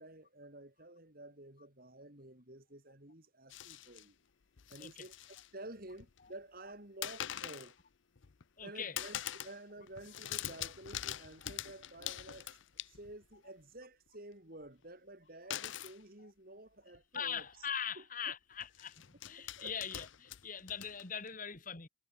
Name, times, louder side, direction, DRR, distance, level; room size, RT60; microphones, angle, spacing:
voice 1, 0.0-4.2 4.7-5.1 5.5-7.7 8.6-12.6 12.9-17.5 18.0-18.1 19.4-19.8, right 1 dB, 45° right, 3.7 m, -51 dB
sound 1, 3.5-4.1 4.6-5.5 5.8-6.3 7.0-7.7 8.2-8.6 9.0-9.6 9.9-13.3 15.5-16.0 16.9-17.0 17.4-17.5 18.6-21.3, left 11 dB, 65° left, 0.6 m, -44 dB
voice 2, 8.6-9.0 17.1-21.9, left 7 dB, 40° left, 1.8 m, -41 dB
head